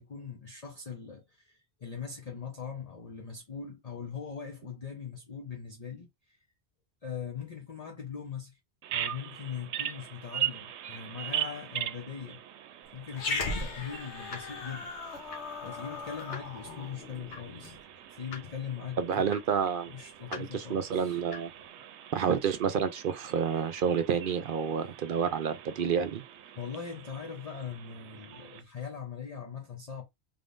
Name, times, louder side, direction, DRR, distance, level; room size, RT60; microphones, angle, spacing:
voice 1, 0.0-6.4 7.0-8.6 8.9-12.4 12.9-17.8 18.1-19.4 19.9-21.2 21.7-21.9 26.6-30.0, left 7 dB, 40° left, 0.7 m, -41 dB
Bird vocalization bird call bird song, 8.8-28.6, right 11 dB, 90° right, 0.9 m, -41 dB
Growling, 13.1-17.8, left 3 dB, 90° left, 1.2 m, -37 dB
sound 1, 14.2-21.7, left 4 dB, 65° left, 1.1 m, -49 dB
voice 2, 19.0-19.9 20.3-21.5 22.1-26.2, right 7 dB, 60° right, 0.6 m, -29 dB
3.6 x 3.6 x 2.5 m
omnidirectional pair, 1.1 m